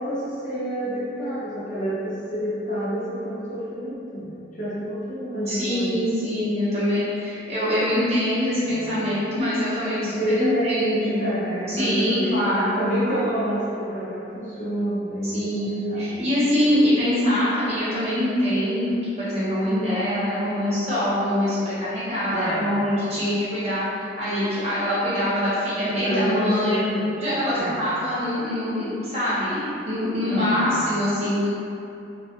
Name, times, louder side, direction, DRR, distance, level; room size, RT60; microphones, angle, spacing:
voice 1, 0.1-6.1 8.6-9.0 10.0-12.5 12.8-16.3 22.3-22.8 25.9-27.2 27.6-27.8 30.3-30.8, equal, 45° left, -9 dB, 0.7 m, -28 dB
voice 2, 5.5-11.3 11.7-13.3 15.2-23.8 24.2-31.5, left 1 dB, 35° right, -12 dB, 0.9 m, -24 dB
2.3 x 2.2 x 2.8 m, 2.7 s
head